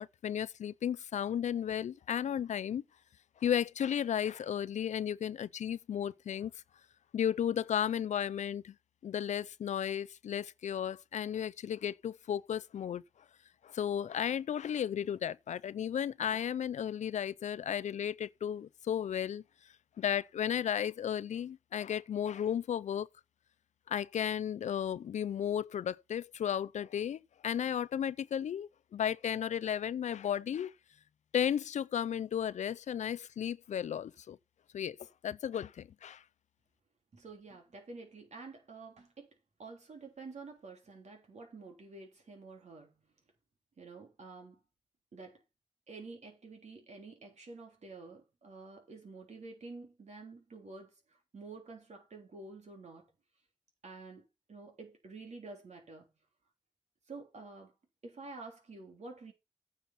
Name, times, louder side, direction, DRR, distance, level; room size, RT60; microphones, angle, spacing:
voice 1, 0.0-2.8 3.4-6.5 7.1-8.7 9.0-13.0 13.6-19.4 20.0-23.1 23.9-30.7 31.3-34.4 34.7-35.0 35.2-36.2, left 9 dB, 80° left, 0.4 m, -34 dB
voice 2, 37.1-39.3 39.6-43.0 43.8-44.6 45.1-45.4 45.9-53.1 53.8-56.1 57.1-57.7 58.0-59.3, right 3 dB, 70° right, 3.5 m, -49 dB
9.3 x 5.6 x 5.8 m
cardioid pair, 50°, 12 cm